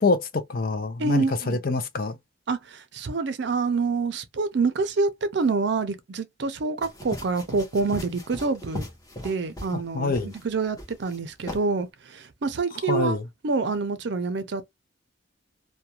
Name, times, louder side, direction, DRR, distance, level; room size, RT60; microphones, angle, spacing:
voice 1, 0.0-2.2 9.7-10.3 12.7-13.3, left 3 dB, 45° left, 0.5 m, -26 dB
voice 2, 1.0-1.6 2.5-8.8 9.2-13.2 13.4-14.6, right 4 dB, 60° right, 0.5 m, -27 dB
sound 1, 6.8-9.8 10.1-10.4 10.8-11.2 11.5-11.6, left 1 dB, 20° left, 0.8 m, -38 dB
2.4 x 2.2 x 2.8 m
head